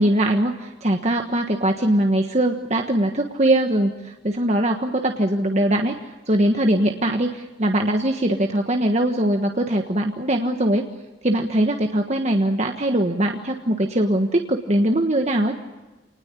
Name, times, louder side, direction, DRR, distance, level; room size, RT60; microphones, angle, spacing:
voice 1, 0.0-5.9 6.3-10.8 11.2-15.5, right 1 dB, 35° right, 3 dB, 1.4 m, -21 dB
28.0 x 20.0 x 8.4 m, 1.2 s
head